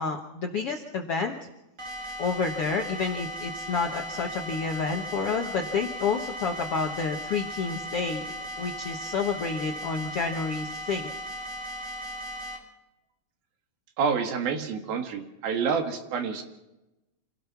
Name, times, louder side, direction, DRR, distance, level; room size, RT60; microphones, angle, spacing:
voice 1, 0.0-1.4 2.2-8.2 8.6-11.1, left 5 dB, 70° left, 3 dB, 1.4 m, -29 dB
sound 1, 1.8-12.6, equal, 20° right, 2.7 m, -37 dB
voice 2, 14.0-16.4, right 6 dB, 70° right, 6 dB, 3.4 m, -28 dB
27.0 x 17.0 x 5.9 m, 0.95 s
omnidirectional pair, 4.6 m